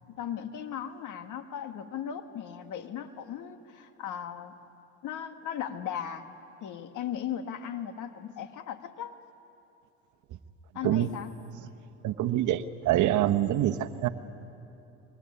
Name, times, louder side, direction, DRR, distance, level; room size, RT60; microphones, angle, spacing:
voice 1, 0.1-4.6 5.0-6.3 6.6-9.2 10.7-11.3, left 9 dB, 55° left, 8 dB, 1.8 m, -37 dB
voice 2, 12.0-14.1, right 13 dB, 55° right, 9 dB, 1.1 m, -25 dB
23.5 x 22.5 x 9.8 m, 2.8 s
supercardioid pair, 85°, 36 cm